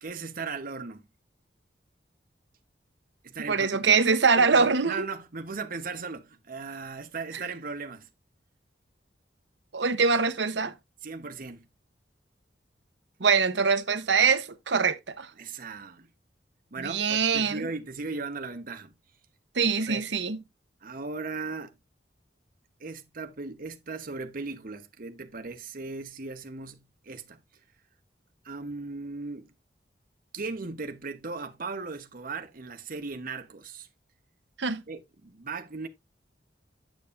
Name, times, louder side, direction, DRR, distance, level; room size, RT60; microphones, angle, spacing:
voice 1, 0.0-1.0 3.2-3.8 4.4-8.1 11.0-11.7 15.4-16.1 16.7-18.9 19.9-20.0 20.8-21.7 22.8-27.4 28.4-29.5 30.3-33.9 34.9-35.9, right 4 dB, 50° right, 1.0 m, -37 dB
voice 2, 3.5-5.1 7.3-7.4 9.7-10.7 13.2-15.3 16.8-17.6 19.6-20.4 34.6-34.8, right 5 dB, 80° right, 0.9 m, -23 dB
9.3 x 6.8 x 2.5 m
head